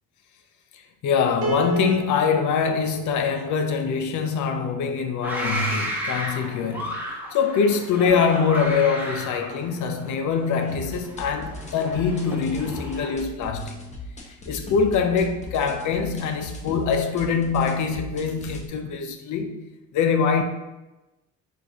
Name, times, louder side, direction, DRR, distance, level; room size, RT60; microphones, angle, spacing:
voice 1, 0.7-7.1 7.3-13.8 14.5-19.7 19.9-20.4, left 6 dB, 75° left, 0.6 m, -24 dB
Piano, 1.4-4.6, right 5 dB, 85° right, 0.6 m, -34 dB
sound 1, 5.2-13.1, equal, 5° right, 1.0 m, -33 dB
sound 2, 10.7-18.7, left 1 dB, 25° left, 0.8 m, -38 dB
4.5 x 2.6 x 3.5 m
cardioid pair, 90°, 30 cm